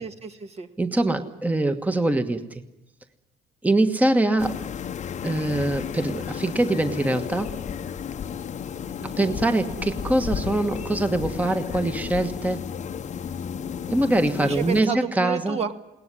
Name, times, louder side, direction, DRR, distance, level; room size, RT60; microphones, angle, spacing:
voice 1, 0.0-0.7 9.0-9.4 14.4-15.7, right 6 dB, 40° right, 7 dB, 1.7 m, -31 dB
voice 2, 0.8-2.4 3.6-4.5 5.2-7.5 9.2-12.7 13.9-15.6, right 2 dB, 10° right, 7 dB, 1.4 m, -23 dB
sound 1, 4.4-14.8, left 7 dB, 45° left, 1.0 m, -33 dB
21.5 x 18.5 x 9.9 m, 0.94 s
cardioid pair, 110°, 17 cm